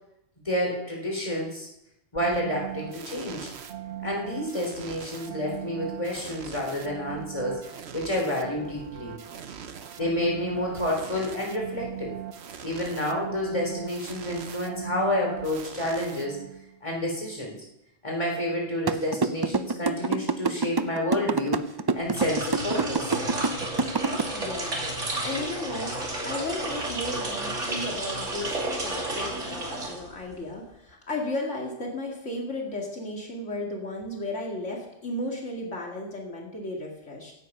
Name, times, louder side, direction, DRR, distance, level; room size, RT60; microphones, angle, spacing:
voice 1, 0.5-1.7 2.1-3.5 4.0-9.1 10.0-12.1 12.6-16.4 16.8-17.5 18.0-21.7 21.9-23.1, left 1 dB, 25° left, -1 dB, 3.8 m, -29 dB
sound 1, 2.2-16.8, right 10 dB, 65° right, 1.1 m, -40 dB
sound 2, 18.9-24.2, right 4 dB, 35° right, 0.4 m, -25 dB
sound 3, 22.0-30.4, right 2 dB, 80° right, 3.1 m, -32 dB
voice 2, 24.3-37.3, left 2 dB, 75° left, -1 dB, 2.6 m, -34 dB
16.5 x 9.4 x 5.5 m, 0.84 s
omnidirectional pair, 1.2 m